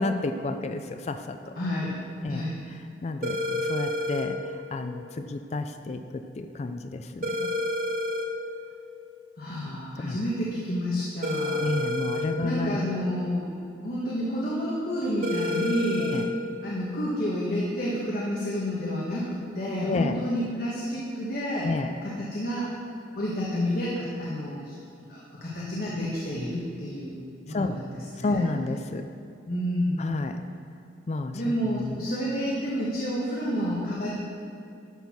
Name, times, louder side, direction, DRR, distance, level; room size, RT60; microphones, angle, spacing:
voice 1, 0.0-1.4 2.2-2.5 3.0-7.5 10.0-10.2 11.6-12.8 16.0-16.3 19.8-20.2 21.6-21.9 27.5-27.8 28.2-29.1 30.0-30.4 31.1-32.0, left 2 dB, 35° left, 8 dB, 0.3 m, -31 dB
voice 2, 1.6-1.9 2.3-2.6 9.4-11.6 12.4-13.5 13.8-16.1 16.6-21.7 22.0-22.7 23.2-24.7 25.1-27.2 27.5-28.5 29.5-30.1 31.3-34.1, equal, 55° left, -6 dB, 1.3 m, -29 dB
sound 1, 3.2-4.3 7.2-8.3 11.2-12.3 15.2-16.3, left 1 dB, 50° right, 0.9 m, -29 dB
12.0 x 4.5 x 6.0 m, 2.5 s
head